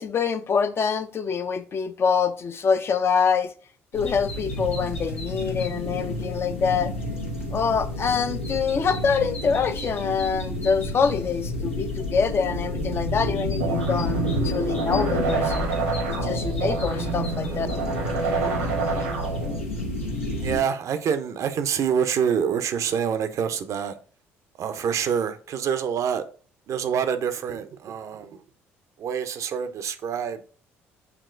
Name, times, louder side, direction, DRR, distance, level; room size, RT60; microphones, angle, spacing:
voice 1, 0.0-3.5 3.9-6.9 7.5-15.7 16.1-17.7, left 6 dB, 35° left, 0.4 m, -25 dB
sound 1, 3.9-20.6, left 1 dB, 90° left, 0.6 m, -30 dB
sound 2, 13.6-19.6, right 5 dB, 80° right, 1.0 m, -29 dB
voice 2, 20.4-24.0 24.6-26.2 26.7-28.4 29.0-30.4, right 7 dB, 50° right, 0.5 m, -26 dB
6.7 x 2.9 x 2.5 m
figure-of-eight pair, 50°, 7 cm